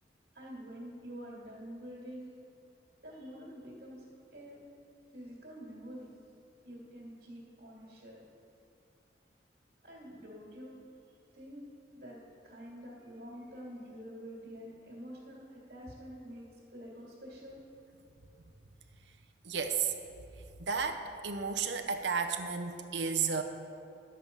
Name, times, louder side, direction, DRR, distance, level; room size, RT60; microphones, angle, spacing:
voice 1, 0.3-2.3 3.0-4.0 4.3-4.6 5.1-6.1 6.6-8.2 9.8-10.8 11.3-11.7 11.9-12.2 12.4-17.6, equal, 65° right, -5 dB, 2.4 m, -47 dB
voice 2, 19.4-19.9 20.6-23.4, right 6 dB, 85° right, 5 dB, 0.8 m, -32 dB
11.0 x 7.7 x 5.4 m, 2.6 s
head